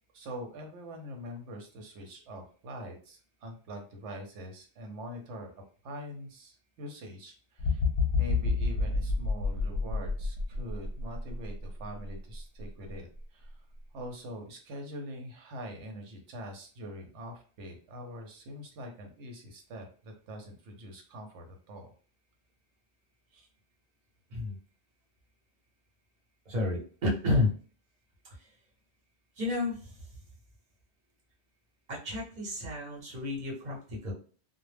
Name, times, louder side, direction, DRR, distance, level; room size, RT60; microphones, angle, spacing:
voice 1, 0.1-5.5 5.8-7.3 7.6-7.8 8.2-13.1 13.3-13.5 13.9-21.9 23.3-23.5, equal, 90° right, 3 dB, 0.9 m, -43 dB
sound 1, 7.6-11.6 12.1-12.3, left 4 dB, 60° left, 0.7 m, -29 dB
voice 2, 26.5-27.5 28.4-28.5 29.4-29.9 31.9-34.1, left 2 dB, 45° right, -3 dB, 0.9 m, -31 dB
2.1 x 2.0 x 3.2 m, 0.40 s
omnidirectional pair, 1.2 m